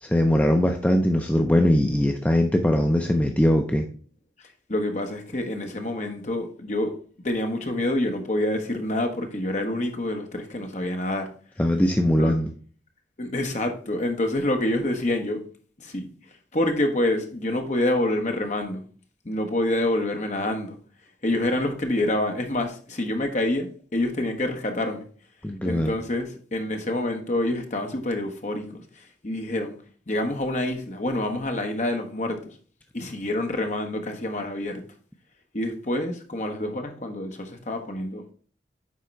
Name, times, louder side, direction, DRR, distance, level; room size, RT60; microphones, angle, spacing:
voice 1, 0.0-3.9 11.6-12.5 25.4-25.9, equal, 10° left, 0.5 m, -21 dB
voice 2, 4.7-11.3 12.2-12.3 13.2-15.4 15.8-16.1 16.5-18.8 19.2-20.8 21.2-25.1 25.6-29.8 30.1-32.6 32.9-34.8 35.5-38.3, left 1 dB, 40° left, 1.1 m, -27 dB
9.3 x 3.7 x 4.5 m
head